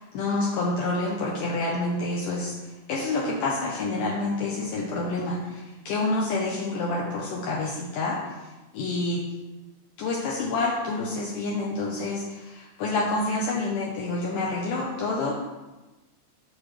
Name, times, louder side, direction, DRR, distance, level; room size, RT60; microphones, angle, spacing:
voice 1, 0.0-8.3 8.7-9.2 10.0-15.4, left 2 dB, 80° left, -3 dB, 1.9 m, -28 dB
11.0 x 6.3 x 3.3 m, 1.1 s
omnidirectional pair, 4.9 m